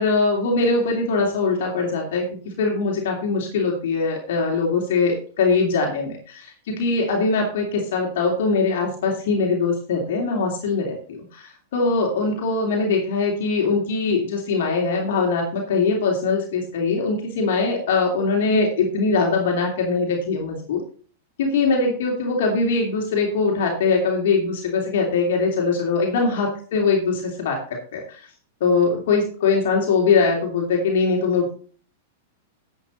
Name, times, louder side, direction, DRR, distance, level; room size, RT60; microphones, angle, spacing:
voice 1, 0.0-20.8 21.4-27.6 27.9-28.3 28.6-31.5, left 4 dB, 60° left, 0 dB, 2.9 m, -22 dB
12.0 x 8.1 x 4.2 m, 0.42 s
figure-of-eight pair, 100°, 0 cm